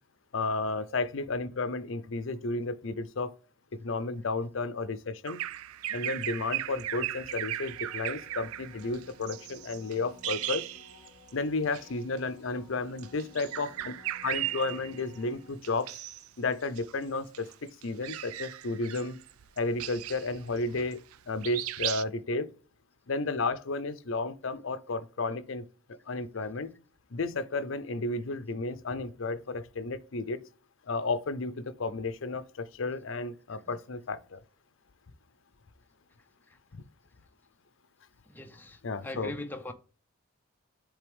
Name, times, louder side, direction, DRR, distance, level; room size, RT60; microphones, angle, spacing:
voice 1, 0.3-3.3 3.8-5.4 5.9-10.7 11.3-14.0 14.2-15.9 16.4-19.2 19.6-22.5 23.1-25.6 26.1-26.7 27.1-30.4 30.8-34.4 36.7-36.8 38.8-39.3, left 3 dB, 65° left, 0.6 m, -32 dB
Bird vocalization bird call bird song, 5.3-11.3 11.6-11.9 12.9-15.2 15.6-16.3 16.6-21.2 21.4-22.0, right 13 dB, 80° right, 0.4 m, -37 dB
sound 1, 7.4-16.0 21.4-21.5, left 2 dB, 30° left, 1.0 m, -56 dB
voice 2, 38.3-38.8 39.0-39.7, left 1 dB, 10° left, 0.6 m, -39 dB
8.0 x 3.4 x 3.4 m
head